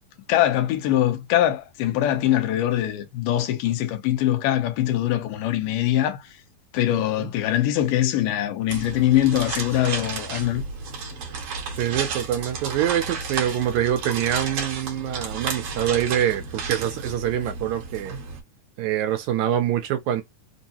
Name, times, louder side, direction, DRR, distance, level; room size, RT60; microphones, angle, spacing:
voice 1, 0.3-6.2 6.7-10.6, left 12 dB, 85° left, 2.4 m, -22 dB
sound 1, 8.7-18.4, right 5 dB, 55° right, 1.8 m, -32 dB
voice 2, 11.8-18.2 18.8-20.2, right 11 dB, 75° right, 1.9 m, -25 dB
5.3 x 2.1 x 2.8 m
omnidirectional pair, 3.7 m